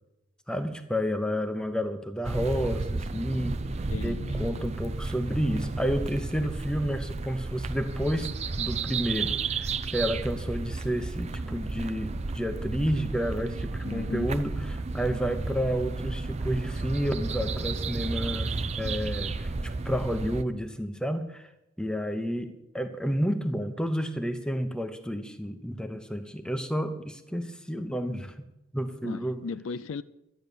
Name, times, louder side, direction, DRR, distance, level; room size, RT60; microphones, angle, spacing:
voice 1, 0.5-3.6 4.0-8.3 8.6-14.5 14.9-21.5 21.8-22.5 22.7-28.3 28.7-29.4, equal, 5° left, 0.9 m, -30 dB
sound 1, 2.2-20.4, right 3 dB, 30° right, 0.5 m, -32 dB
voice 2, 3.9-4.6 13.8-14.3 29.0-30.0, left 4 dB, 70° left, 0.4 m, -36 dB
12.5 x 9.5 x 6.9 m
head